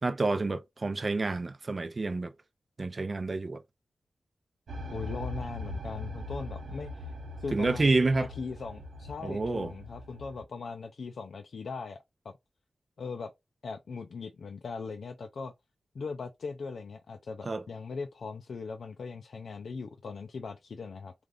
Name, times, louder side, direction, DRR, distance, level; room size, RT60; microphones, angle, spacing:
voice 1, 0.0-2.3 2.8-3.6 7.5-8.3 9.2-9.7 17.4-17.6, right 3 dB, 40° right, 0.5 m, -28 dB
sound 1, 4.7-10.4, left 1 dB, 85° right, 1.0 m, -41 dB
voice 2, 4.9-12.3 13.0-13.3 13.6-15.5 15.9-21.1, left 4 dB, 80° left, 0.4 m, -39 dB
3.4 x 2.4 x 3.7 m
wide cardioid pair, 95°, 0 cm